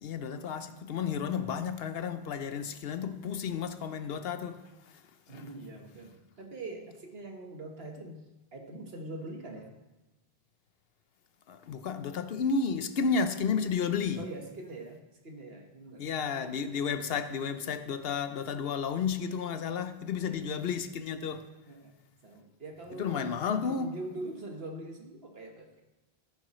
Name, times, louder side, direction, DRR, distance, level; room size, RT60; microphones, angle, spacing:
voice 1, 0.0-4.6 5.3-5.4 11.5-14.2 16.0-21.5 22.9-23.9, left 6 dB, 70° left, 0.8 m, -32 dB
voice 2, 5.3-9.7 14.2-15.0 15.2-16.1 20.1-20.5 21.7-21.9 22.2-25.8, right 2 dB, 65° right, 1.6 m, -43 dB
15.0 x 9.5 x 3.1 m
omnidirectional pair, 1.1 m